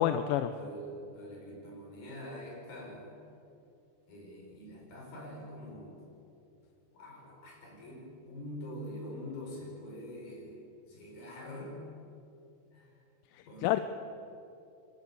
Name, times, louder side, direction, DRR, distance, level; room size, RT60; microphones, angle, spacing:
voice 1, 0.0-0.5 13.3-13.8, left 12 dB, 80° left, 10 dB, 2.4 m, -28 dB
voice 2, 0.6-3.2 4.1-6.0 6.9-11.8 12.7-13.0 13.5-13.8, equal, 65° left, -1 dB, 6.6 m, -45 dB
28.0 x 12.5 x 8.4 m, 2.6 s
omnidirectional pair, 4.2 m